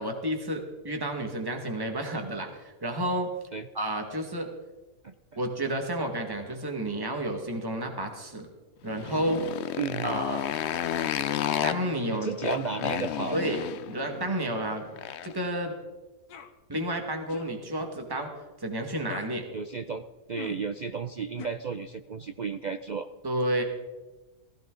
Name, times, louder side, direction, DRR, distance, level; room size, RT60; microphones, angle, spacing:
voice 1, 0.0-3.3 3.7-4.5 5.4-8.5 8.8-9.4 10.0-10.4 11.6-12.3 13.3-13.6 13.9-14.9 15.2-15.7 16.7-18.3 18.6-19.5 23.2-23.6, right 1 dB, 15° right, 3 dB, 1.8 m, -31 dB
Motorcycle, 8.8-15.5, left 10 dB, 60° left, 0.7 m, -32 dB
voice 2, 9.8-10.2 12.1-13.4 19.5-20.0 20.3-23.1, right 5 dB, 70° right, 8 dB, 0.4 m, -33 dB
sound 1, 16.3-16.5 17.3-17.5 19.1-19.3 20.3-20.6 21.4-21.5, left 6 dB, 90° left, 1.6 m, -41 dB
17.0 x 16.0 x 3.9 m, 1.1 s
omnidirectional pair, 1.6 m